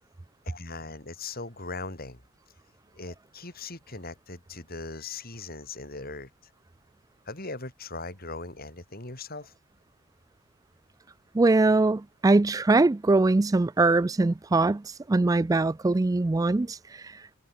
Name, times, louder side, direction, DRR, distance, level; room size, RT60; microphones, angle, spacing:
voice 1, 0.5-2.2 2.9-6.3 7.3-9.5, left 3 dB, 50° left, 7.1 m, -39 dB
voice 2, 11.3-17.1, right 2 dB, 15° right, 0.3 m, -22 dB
head